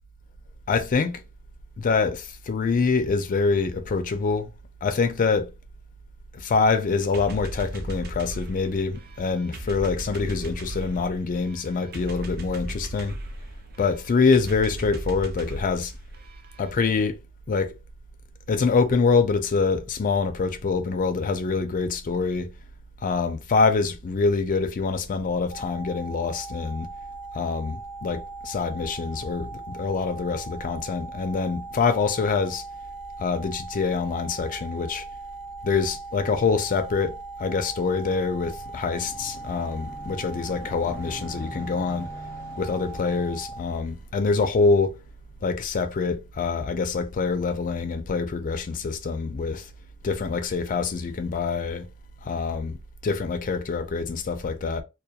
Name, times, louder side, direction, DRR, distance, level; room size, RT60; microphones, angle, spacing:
voice 1, 0.7-1.2 1.8-4.5 4.8-5.5 6.3-13.2 13.8-15.9 16.6-17.2 17.5-17.7 18.5-22.5 23.0-26.9 27.3-32.6 33.2-35.0 35.6-42.1 42.6-45.0 45.4-49.7 50.0-51.9 52.2-52.8 53.0-54.8, left 4 dB, 35° left, 0.3 m, -25 dB
sound 1, 7.1-16.7, right 1 dB, 45° right, 0.4 m, -37 dB
sound 2, 25.5-43.6, right 3 dB, 65° right, 0.9 m, -39 dB
sound 3, 38.4-46.6 47.2-47.3, left 1 dB, 10° right, 0.9 m, -46 dB
2.2 x 2.2 x 2.7 m
head